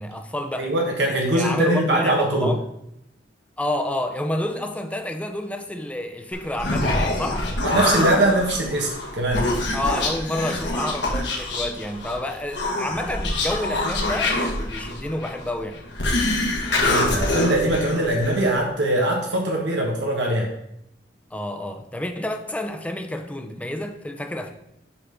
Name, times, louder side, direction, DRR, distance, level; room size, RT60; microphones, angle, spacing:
voice 1, 0.0-0.7 1.3-2.6 3.6-7.4 9.7-15.8 21.3-24.5, left 1 dB, 10° left, 0.5 m, -29 dB
voice 2, 0.6-2.5 7.6-9.5 16.8-20.5, right 1 dB, 85° right, 1.2 m, -22 dB
Human voice, 6.3-18.6, left 2 dB, 75° left, 1.4 m, -25 dB
6.8 x 3.7 x 5.7 m
head